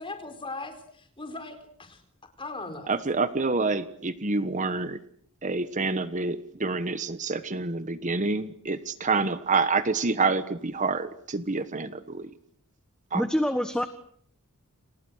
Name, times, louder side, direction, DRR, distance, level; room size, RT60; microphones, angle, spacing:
voice 1, 0.0-2.0 2.4-2.9, left 3 dB, 25° left, 7 dB, 4.6 m, -39 dB
voice 2, 2.9-5.0 5.4-12.3 13.1-13.2, right 3 dB, 35° right, 12 dB, 1.3 m, -27 dB
voice 3, 13.1-13.9, equal, 5° left, 9 dB, 1.4 m, -25 dB
30.0 x 28.5 x 6.5 m, 0.64 s
head